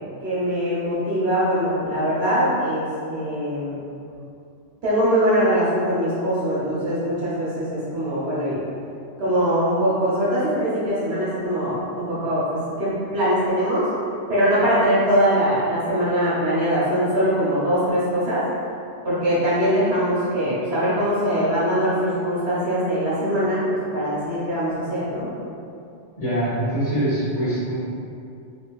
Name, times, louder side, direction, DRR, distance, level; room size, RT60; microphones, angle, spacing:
voice 1, 0.2-3.8 4.8-8.6 9.2-13.9 14.3-18.4 19.0-25.3, equal, 60° right, -10 dB, 1.2 m, -22 dB
voice 2, 26.2-27.7, right 1 dB, 40° left, -11 dB, 1.1 m, -23 dB
3.2 x 2.7 x 2.3 m, 2.5 s
omnidirectional pair, 1.2 m